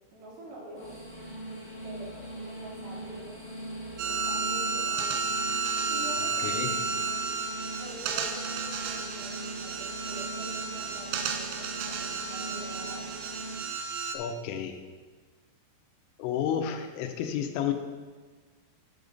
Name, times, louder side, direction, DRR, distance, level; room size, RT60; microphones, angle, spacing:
voice 1, 0.1-0.9 1.8-3.5 4.0-5.2 5.9-6.6 7.7-13.1, right 1 dB, 65° right, -4 dB, 3.4 m, -45 dB
sound 1, 0.7-13.5, right 1 dB, 30° left, 1.6 m, -41 dB
sound 2, 4.0-14.2, right 4 dB, 85° right, 3.3 m, -32 dB
voice 2, 6.4-6.8 14.1-14.8 16.2-17.7, left 8 dB, 90° left, 7 dB, 3.3 m, -31 dB
10.0 x 7.0 x 4.0 m, 1.4 s
omnidirectional pair, 5.6 m